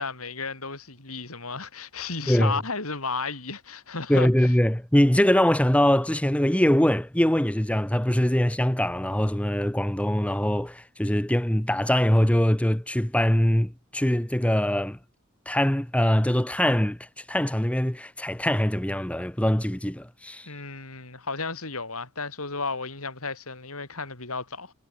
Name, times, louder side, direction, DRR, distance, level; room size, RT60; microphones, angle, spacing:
voice 1, 0.0-4.5 20.5-24.7, left 4 dB, 75° left, 5.3 m, -33 dB
voice 2, 2.2-2.6 4.1-15.0 15.5-20.5, equal, 5° left, 0.8 m, -23 dB
head